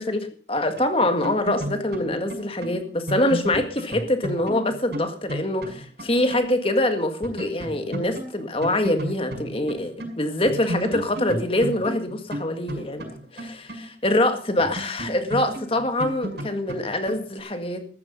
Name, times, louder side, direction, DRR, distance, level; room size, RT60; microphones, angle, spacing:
voice 1, 0.0-18.0, left 1 dB, 30° left, 7 dB, 1.8 m, -24 dB
sound 1, 0.7-6.5 6.8-6.9 7.2-10.2 10.5-14.2 14.6-17.4, right 1 dB, 65° right, 6.2 m, -33 dB
14.5 x 11.5 x 5.5 m, 0.42 s
head